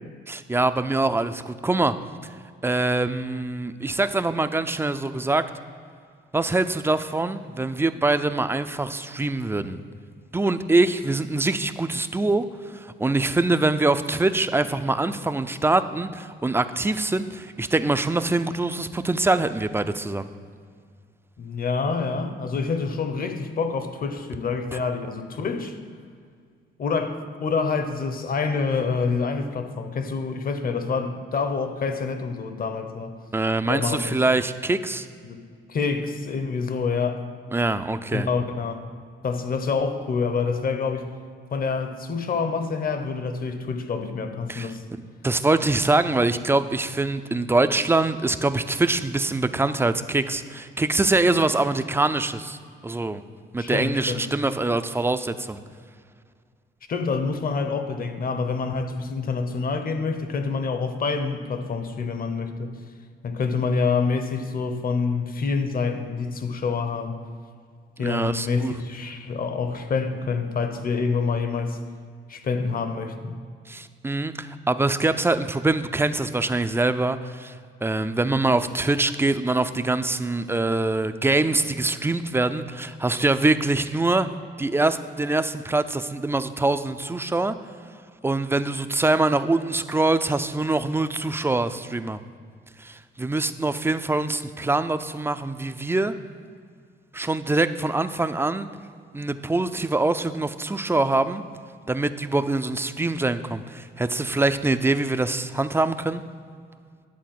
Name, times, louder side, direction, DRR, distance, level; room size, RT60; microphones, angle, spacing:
voice 1, 0.3-1.9 2.6-5.4 6.3-9.8 10.3-20.3 33.3-35.1 37.5-38.3 44.5-44.7 45.2-52.6 52.8-53.2 53.5-55.6 68.0-68.7 73.7-77.5 77.8-84.3 84.6-87.6 88.2-92.2 92.8-96.1 97.1-98.7 99.1-101.4 101.9-106.2, right 2 dB, 10° right, 0.4 m, -24 dB
voice 2, 21.4-25.8 26.8-33.2 33.6-34.2 35.2-35.4 35.7-37.3 38.1-38.9 39.2-41.1 41.5-44.8 53.6-54.3 56.9-62.8 63.2-67.2 68.0-71.8 72.3-73.4, left 4 dB, 45° left, 0.9 m, -27 dB
10.5 x 4.0 x 7.7 m
cardioid pair, 90°, 20 cm